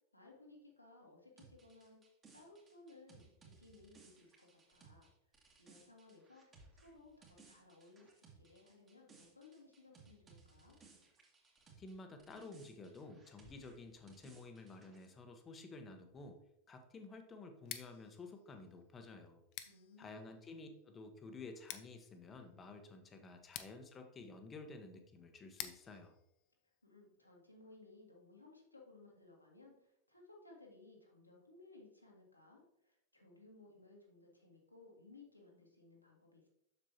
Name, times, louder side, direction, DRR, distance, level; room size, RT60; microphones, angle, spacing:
voice 1, 0.1-2.0 2.3-5.1 5.6-6.5 6.7-10.8 19.6-20.2 26.8-36.5, left 2 dB, 85° left, -1 dB, 1.7 m, -61 dB
sound 1, 1.4-11.9 12.2-15.1, right 4 dB, 20° right, 1.9 m, -63 dB
voice 2, 11.8-16.4 16.7-19.4 20.0-26.2, left 3 dB, 20° left, 6 dB, 1.0 m, -52 dB
Scissors, 17.5-27.4, left 12 dB, 40° left, 0.6 m, -54 dB
7.4 x 6.7 x 2.9 m, 0.80 s
figure-of-eight pair, 90°, 0 cm